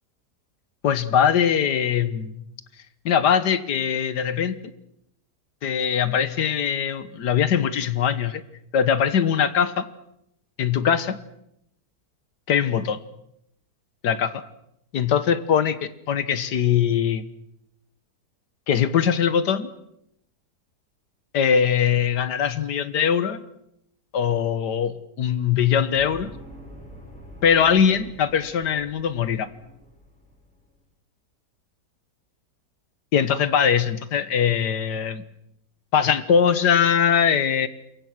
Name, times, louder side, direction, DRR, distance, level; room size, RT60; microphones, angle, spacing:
voice 1, 0.8-2.4 3.1-4.7 5.6-8.4 8.7-9.9 10.6-11.2 12.5-13.0 14.0-14.4 14.9-17.2 18.7-19.7 21.3-23.4 24.1-26.3 27.4-29.5 33.1-35.2 35.9-37.7, left 8 dB, 85° left, 13 dB, 1.8 m, -21 dB
sound 1, 25.9-30.7, equal, 5° left, 6.4 m, -45 dB
27.5 x 23.5 x 6.1 m, 0.77 s
omnidirectional pair, 1.8 m